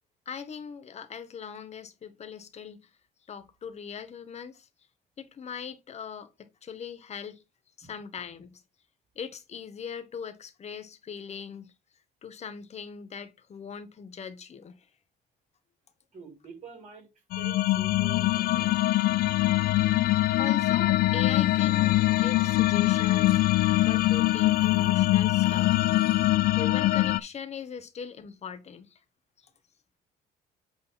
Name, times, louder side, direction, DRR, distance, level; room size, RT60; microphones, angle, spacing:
voice 1, 0.3-2.8 3.3-4.7 5.2-6.3 6.6-7.4 7.8-8.6 9.1-11.7 12.2-14.8 20.4-23.4 23.8-25.8 26.5-29.0, left 6 dB, 40° left, 1.3 m, -40 dB
voice 2, 16.1-17.1 17.4-18.7, right 4 dB, 45° right, 5.0 m, -47 dB
sound 1, 17.3-27.2, left 16 dB, 65° left, 0.4 m, -23 dB
8.2 x 3.7 x 4.2 m
cardioid pair, 110°, 17 cm